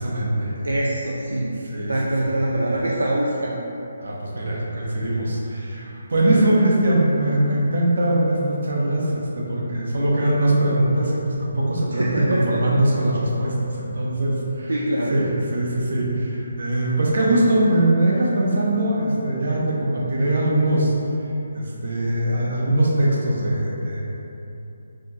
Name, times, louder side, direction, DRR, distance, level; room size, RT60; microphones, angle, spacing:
voice 1, 0.0-0.5 1.7-1.9 2.2-2.4 4.0-14.7 15.1-20.9 21.5-24.0, right 1 dB, 65° right, -4 dB, 0.8 m, -21 dB
voice 2, 0.6-1.6 1.9-3.6 11.9-12.8 14.7-15.3, right 1 dB, 85° right, -3 dB, 0.4 m, -24 dB
4.2 x 2.8 x 3.0 m, 2.9 s
figure-of-eight pair, 150°, 0 cm